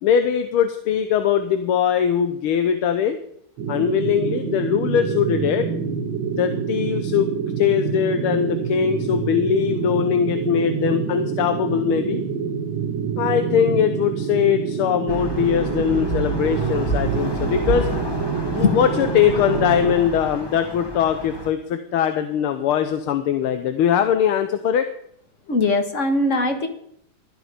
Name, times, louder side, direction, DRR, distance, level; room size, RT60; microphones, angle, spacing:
voice 1, 0.0-3.2 3.7-5.7 6.3-7.3 7.6-12.2 13.2-17.9 18.5-24.9, left 8 dB, 80° left, 9 dB, 1.8 m, -21 dB
sound 1, 3.6-20.0, right 6 dB, 65° right, 1.9 m, -26 dB
sound 2, 15.1-21.5, right 1 dB, 15° left, 0.9 m, -29 dB
voice 2, 25.5-26.7, left 3 dB, 40° left, 7 dB, 1.7 m, -20 dB
16.0 x 12.5 x 5.1 m, 0.69 s
omnidirectional pair, 2.3 m